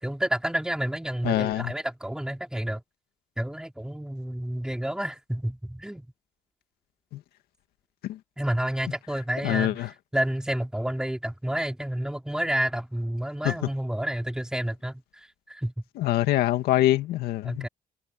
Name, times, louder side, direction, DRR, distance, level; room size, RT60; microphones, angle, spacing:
voice 1, 0.0-2.8 3.4-6.1 8.4-15.7 17.4-17.7, right 1 dB, 5° right, 3.8 m, -30 dB
voice 2, 1.2-1.7 7.1-7.2 8.0-8.2 9.4-9.9 13.4-13.5 16.0-17.7, left 14 dB, 85° left, 2.4 m, -24 dB
cardioid pair, 90°, 16 cm